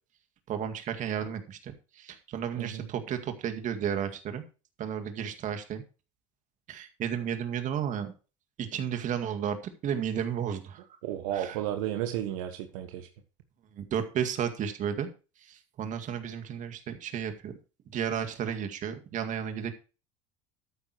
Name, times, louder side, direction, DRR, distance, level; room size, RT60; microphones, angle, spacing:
voice 1, 0.5-4.4 4.8-5.8 6.7-8.1 8.6-10.8 11.3-11.6 13.7-15.1 15.4-17.5 17.9-19.7, right 8 dB, 50° right, 7 dB, 2.1 m, -33 dB
voice 2, 11.0-13.1, right 11 dB, 80° right, 6 dB, 1.4 m, -33 dB
13.0 x 9.2 x 3.0 m, 0.33 s
supercardioid pair, 90°, 17 cm